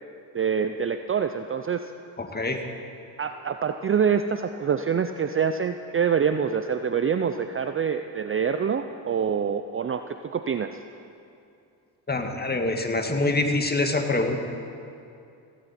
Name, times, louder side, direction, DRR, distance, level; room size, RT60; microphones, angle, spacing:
voice 1, 0.3-1.8 3.2-10.8, right 7 dB, 25° right, 8 dB, 0.6 m, -26 dB
voice 2, 2.2-2.6 12.1-14.4, left 2 dB, 20° left, 4 dB, 2.0 m, -25 dB
17.0 x 16.5 x 4.4 m, 2.6 s
supercardioid pair, 65°, 47 cm